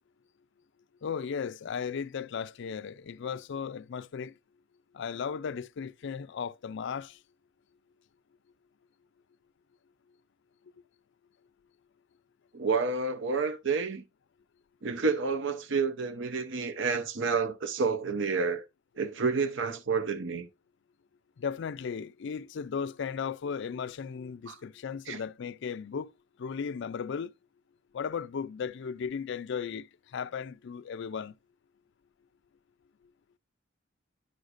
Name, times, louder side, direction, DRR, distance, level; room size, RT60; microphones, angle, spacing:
voice 1, 1.0-4.3 4.9-7.2 21.4-26.1 26.4-27.3 27.9-31.3, left 6 dB, 60° left, 0.4 m, -36 dB
voice 2, 12.5-14.0 14.8-18.6 19.0-20.5 24.5-24.6 25.1-25.2, right 4 dB, 65° right, 0.7 m, -29 dB
11.0 x 6.4 x 2.5 m
head